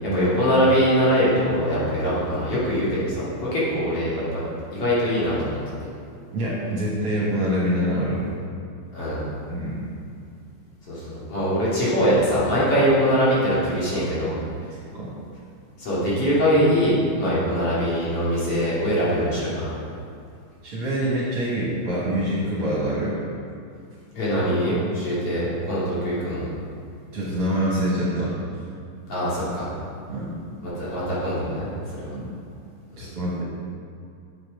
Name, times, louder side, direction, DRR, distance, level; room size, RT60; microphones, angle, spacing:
voice 1, 0.0-4.4 4.7-5.6 8.9-9.3 10.9-14.4 15.8-19.7 24.1-26.5 29.1-29.7 30.8-31.7 32.0-32.1 33.0-33.1, equal, 50° left, -9 dB, 3.0 m, -22 dB
voice 2, 6.3-8.3 9.5-9.9 14.9-15.1 17.3-17.4 20.6-23.2 27.1-28.3 30.1-30.3 32.1-32.3 33.0-33.4, equal, 50° right, -6 dB, 2.2 m, -25 dB
7.9 x 7.7 x 4.9 m, 2.4 s
omnidirectional pair, 3.6 m